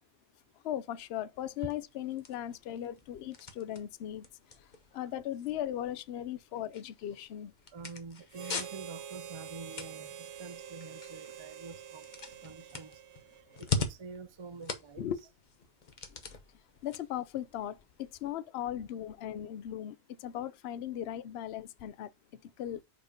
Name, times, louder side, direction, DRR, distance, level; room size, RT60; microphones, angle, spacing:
voice 1, 0.6-4.2 4.9-7.5 15.0-15.2 16.8-22.8, left 11 dB, 70° left, 0.8 m, -38 dB
sound 1, 1.4-18.3, left 4 dB, 45° left, 1.0 m, -43 dB
voice 2, 7.7-13.0 13.4-15.1, right 4 dB, 40° right, 0.4 m, -47 dB
Harmonica, 8.3-13.8, right 8 dB, 80° right, 1.0 m, -46 dB
5.2 x 4.8 x 5.0 m
omnidirectional pair, 1.2 m